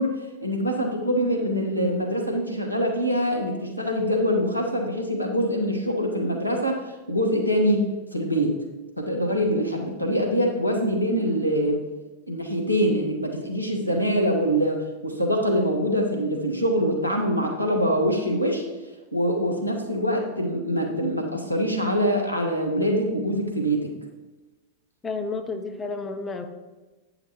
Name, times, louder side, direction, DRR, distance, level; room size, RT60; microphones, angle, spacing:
voice 1, 0.0-7.8 8.1-8.6 9.0-11.8 12.3-18.6 19.1-23.9, equal, 90° left, 1 dB, 1.3 m, -24 dB
voice 2, 25.0-26.5, left 4 dB, 15° left, 6 dB, 0.7 m, -31 dB
8.9 x 5.7 x 4.4 m, 1.2 s
figure-of-eight pair, 90°, 0 cm